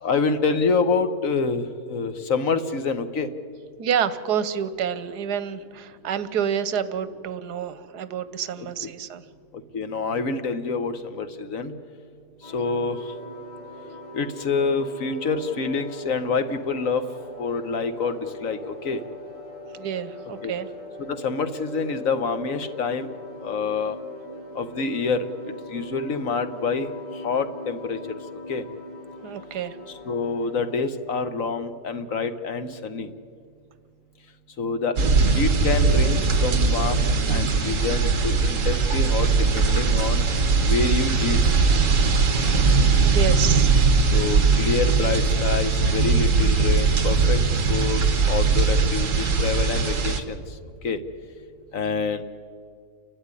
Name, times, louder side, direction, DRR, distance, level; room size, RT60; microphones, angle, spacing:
voice 1, 0.0-3.3 8.6-8.7 9.7-11.7 12.5-13.0 14.1-17.0 17.4-19.0 20.4-20.5 21.1-23.1 23.4-23.9 24.5-26.9 27.2-28.0 28.5-28.6 30.0-33.1 34.6-34.9 35.2-40.2 40.7-41.4 44.1-47.4 47.7-48.0 48.3-50.4 50.8-51.0 51.7-52.2, left 4 dB, 60° left, 9 dB, 1.4 m, -27 dB
voice 2, 3.8-9.2 19.7-20.7 29.2-29.8 43.0-43.7, right 8 dB, 80° right, 14 dB, 1.4 m, -28 dB
sound 1, 12.4-30.8, left 2 dB, 35° right, 7.1 m, -41 dB
sound 2, 35.0-50.2, right 4 dB, 55° right, 1.5 m, -20 dB
29.5 x 12.5 x 9.8 m, 2.2 s
omnidirectional pair, 1.7 m